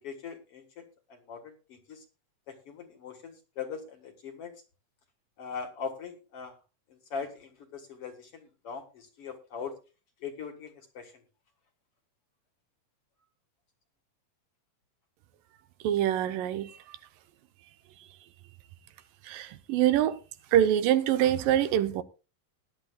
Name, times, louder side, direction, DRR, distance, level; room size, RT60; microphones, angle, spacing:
voice 1, 0.0-0.8 1.1-2.0 2.7-4.5 5.4-6.6 6.9-9.7 10.2-11.1, left 6 dB, 50° left, 2.3 m, -41 dB
voice 2, 15.8-16.7 19.3-20.2 20.5-22.0, right 11 dB, 90° right, 2.6 m, -25 dB
19.5 x 11.0 x 2.4 m
omnidirectional pair, 3.9 m